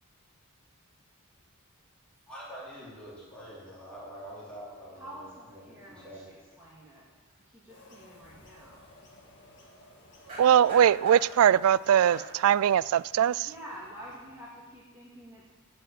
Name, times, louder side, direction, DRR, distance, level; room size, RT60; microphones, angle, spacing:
voice 1, 2.3-6.2, equal, 5° left, 4.2 m, -45 dB
voice 2, 4.9-7.1 7.4-8.9 13.4-15.5, right 1 dB, 10° right, 2.4 m, -48 dB
sound 1, 6.5-6.6 6.8-7.2 10.3-11.6 12.1-12.5 13.1-13.3, right 1 dB, 30° right, 4.5 m, -44 dB
sound 2, 7.7-14.7, left 1 dB, 55° left, 2.1 m, -55 dB
voice 3, 10.4-13.5, right 9 dB, 70° right, 0.3 m, -21 dB
17.5 x 6.2 x 7.5 m
head